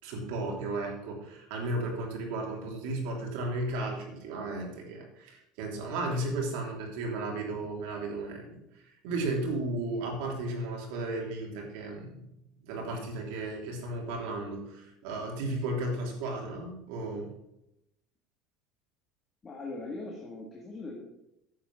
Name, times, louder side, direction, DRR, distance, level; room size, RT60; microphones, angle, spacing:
voice 1, 0.0-12.2 12.6-17.3, right 2 dB, 75° right, 0 dB, 3.3 m, -34 dB
voice 2, 19.4-21.0, left 2 dB, 20° left, -1 dB, 1.7 m, -40 dB
10.0 x 8.1 x 6.3 m, 0.87 s
cardioid pair, 170°, 0 cm